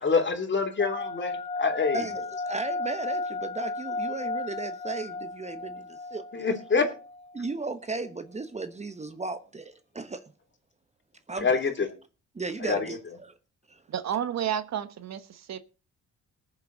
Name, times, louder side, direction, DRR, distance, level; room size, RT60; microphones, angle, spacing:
voice 1, 0.0-2.0 6.3-6.9 11.4-11.9 12.6-12.8, left 5 dB, 40° left, 3.1 m, -26 dB
sound 1, 0.8-7.4, left 3 dB, 20° left, 1.3 m, -34 dB
voice 2, 1.9-6.5 7.3-10.2 11.3-11.6 12.3-13.3 13.7-13.8, right 3 dB, 20° right, 1.1 m, -36 dB
voice 3, 13.9-15.6, right 9 dB, 60° right, 1.2 m, -31 dB
20.0 x 7.3 x 4.0 m
cardioid pair, 90°, 30 cm